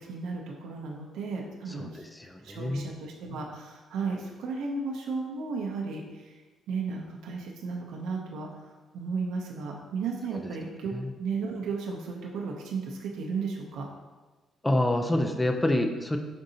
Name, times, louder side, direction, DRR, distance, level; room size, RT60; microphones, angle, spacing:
voice 1, 0.1-2.0 2.4-6.0 6.7-8.5 8.9-10.9 11.2-13.9, right 4 dB, 90° right, -1 dB, 0.6 m, -34 dB
voice 2, 1.7-2.9 10.3-10.6 10.9-11.1 14.6-16.2, left 1 dB, 10° left, 5 dB, 0.3 m, -28 dB
5.2 x 3.7 x 2.7 m, 1.2 s
cardioid pair, 125°, 0 cm